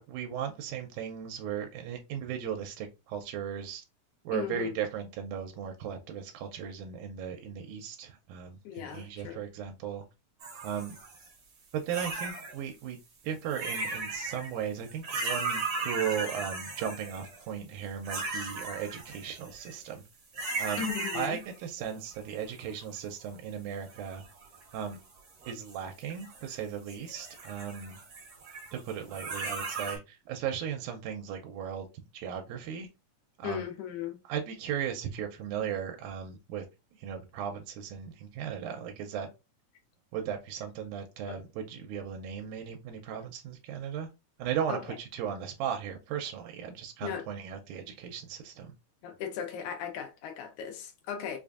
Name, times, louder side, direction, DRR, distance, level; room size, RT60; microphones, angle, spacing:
voice 1, 0.1-3.8 4.3-10.0 10.6-11.0 11.7-13.0 13.2-20.0 20.6-20.8 21.1-24.2 24.7-25.0 25.5-28.0 28.7-31.9 32.1-32.9 33.4-33.7 34.3-36.6 37.0-39.3 40.1-44.1 44.4-48.7, right 8 dB, 85° right, 2.0 m, -36 dB
voice 2, 4.3-4.8 8.7-9.4 20.8-21.4 33.4-34.2 41.3-41.4 44.7-44.8 47.0-47.3 49.0-51.4, left 8 dB, 80° left, 2.2 m, -37 dB
sound 1, 10.4-11.3 11.9-12.6 13.4-14.5 14.9-17.4 18.0-19.9 20.3-21.6 22.0-23.0 23.9-25.0 25.4-26.5 26.9-30.0, right 3 dB, 60° right, 1.0 m, -37 dB
5.0 x 2.5 x 2.3 m
omnidirectional pair, 3.4 m